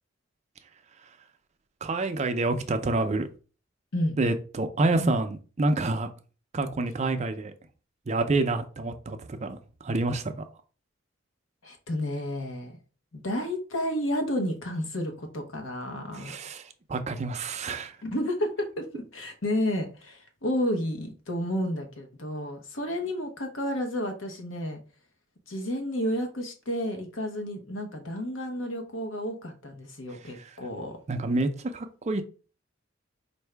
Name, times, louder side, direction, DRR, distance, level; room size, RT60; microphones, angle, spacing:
voice 1, 1.8-3.3 4.2-6.1 6.5-7.5 8.1-10.4 16.1-18.0 30.3-30.5 31.1-32.2, right 2 dB, 35° right, 0.4 m, -28 dB
voice 2, 11.6-12.7 13.1-16.4 18.0-24.8 25.5-31.0, equal, 90° left, 1.0 m, -31 dB
4.6 x 2.6 x 3.3 m
head